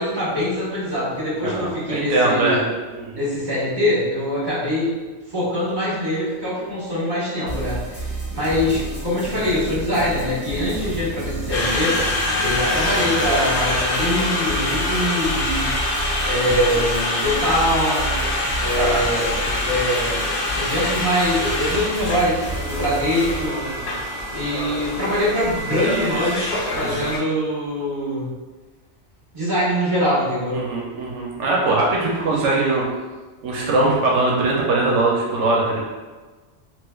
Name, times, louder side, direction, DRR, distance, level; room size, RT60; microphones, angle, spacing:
voice 1, 0.0-2.7 3.1-5.0 5.3-12.0 12.4-15.8 16.2-18.2 18.6-19.3 19.6-23.6 24.3-28.3 29.3-30.6, equal, 40° right, -9 dB, 1.5 m, -23 dB
voice 2, 1.4-2.6 2.9-3.2 16.5-16.7 18.7-19.0 19.4-19.7 23.6-23.9 26.7-27.1 30.5-32.9 33.4-35.9, right 2 dB, 80° right, -3 dB, 0.9 m, -22 dB
sound 1, 7.5-23.5, equal, 20° right, 1.2 m, -31 dB
sound 2, 8.3-13.4, left 2 dB, 90° left, 1.4 m, -36 dB
Conversation, 11.5-27.2, left 1 dB, 55° left, 0.7 m, -25 dB
3.1 x 3.0 x 2.3 m, 1.3 s
omnidirectional pair, 1.2 m